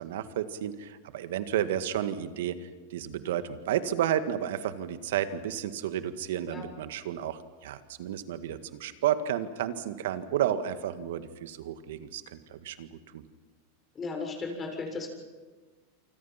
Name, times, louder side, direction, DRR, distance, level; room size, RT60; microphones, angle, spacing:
voice 1, 0.0-12.9 13.1-13.2, right 10 dB, 75° right, 10 dB, 1.8 m, -32 dB
voice 2, 13.9-15.1, left 3 dB, 25° left, 2 dB, 6.9 m, -35 dB
28.0 x 25.0 x 5.9 m, 1.4 s
hypercardioid pair, 120°, 0 cm